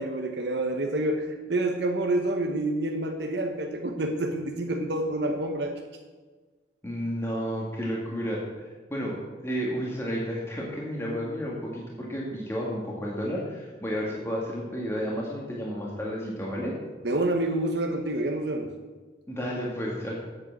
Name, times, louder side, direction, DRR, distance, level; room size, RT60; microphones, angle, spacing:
voice 1, 0.0-5.8 17.0-18.7, right 1 dB, 70° right, 2 dB, 1.0 m, -28 dB
voice 2, 6.8-8.4 8.9-16.7 19.3-20.1, equal, 15° left, -4 dB, 1.8 m, -31 dB
8.7 x 7.5 x 7.4 m, 1.4 s
head